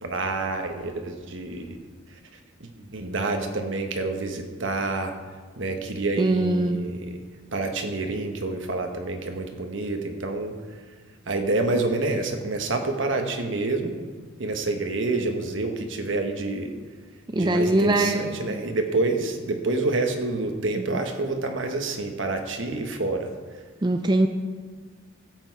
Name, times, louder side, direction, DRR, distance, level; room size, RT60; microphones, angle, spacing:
voice 1, 0.0-1.8 2.6-5.1 5.6-7.0 7.5-10.5 11.3-14.0 14.4-16.7 17.3-23.3, right 3 dB, 65° right, 4 dB, 1.3 m, -28 dB
voice 2, 6.2-6.8 17.3-18.4 20.8-21.0 23.8-24.3, right 1 dB, 20° right, 6 dB, 0.4 m, -22 dB
14.0 x 8.0 x 4.7 m, 1.5 s
head